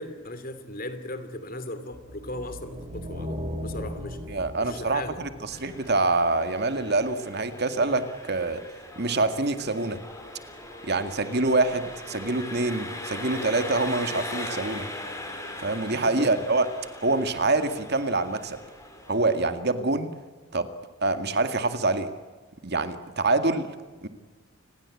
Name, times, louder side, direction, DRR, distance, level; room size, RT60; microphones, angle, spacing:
voice 1, 0.0-4.2 4.6-5.2 15.9-16.3, left 1 dB, 45° left, 11 dB, 2.8 m, -37 dB
sound 1, 1.9-6.3, equal, 35° right, 3.0 m, -37 dB
voice 2, 4.3-8.6 9.0-10.0 10.8-14.9 15.6-16.7 17.0-18.6 19.1-20.1 20.5-20.7 21.0-22.1 22.6-23.7 24.0-24.1, right 3 dB, 50° right, 9 dB, 2.1 m, -25 dB
Engine, 5.5-19.5, left 1 dB, 15° left, 4.8 m, -40 dB
29.0 x 20.5 x 8.6 m, 1.3 s
head